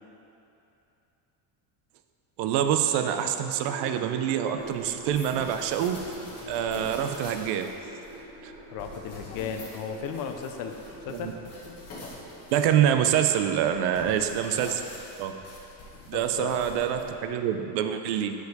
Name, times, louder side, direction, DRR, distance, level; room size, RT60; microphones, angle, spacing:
voice 1, 2.4-6.0 6.5-7.7 8.4-8.5 11.1-11.3 12.5-14.8 15.2-15.3 16.1-18.3, right 9 dB, 80° right, 7 dB, 0.5 m, -26 dB
sound 1, 3.5-12.5 12.7-13.4, right 2 dB, 25° right, 0.5 m, -45 dB
sound 2, 4.6-17.3, left 2 dB, 40° left, 1.1 m, -46 dB
voice 2, 8.7-10.8 11.1-11.4 14.0-14.2 14.6-14.8 16.1-16.5, left 7 dB, 55° left, 5 dB, 0.5 m, -35 dB
6.7 x 4.7 x 4.0 m, 2.9 s
cardioid pair, 170°, 40 cm